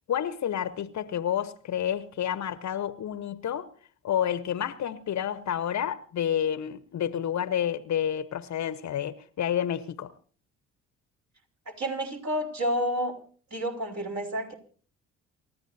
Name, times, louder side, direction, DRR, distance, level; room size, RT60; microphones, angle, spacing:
voice 1, 0.1-3.7 4.0-10.1, left 9 dB, 45° left, 1.0 m, -29 dB
voice 2, 11.7-13.2 13.5-14.5, equal, 45° right, 4.6 m, -30 dB
28.5 x 14.0 x 2.7 m
hypercardioid pair, 50°, 37 cm